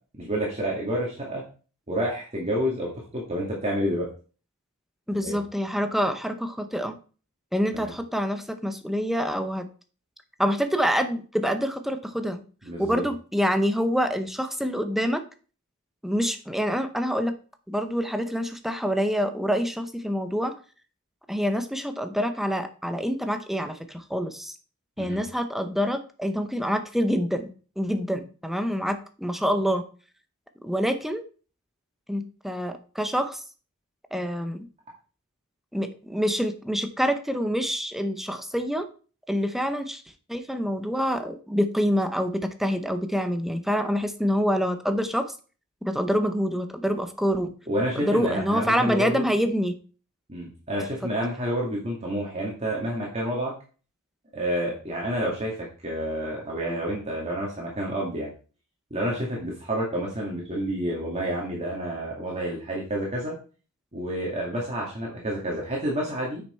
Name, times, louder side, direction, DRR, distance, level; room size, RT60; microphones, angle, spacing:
voice 1, 0.1-1.4 1.9-4.1 5.2-5.4 7.7-7.9 12.6-13.0 25.0-25.2 47.7-49.3 50.3-53.5 54.3-58.3 58.9-63.3 63.9-66.4, equal, 30° right, -3 dB, 2.2 m, -29 dB
voice 2, 5.1-7.0 7.5-9.6 10.4-12.4 12.8-15.2 16.0-17.3 17.7-20.5 21.3-24.6 25.0-27.5 27.8-29.8 30.6-31.2 32.1-33.4 34.1-34.7 35.7-38.9 39.3-40.0 40.3-45.3 45.8-47.5 47.9-49.8 51.0-51.1, equal, ahead, 8 dB, 0.8 m, -26 dB
8.9 x 6.1 x 4.4 m, 0.38 s
head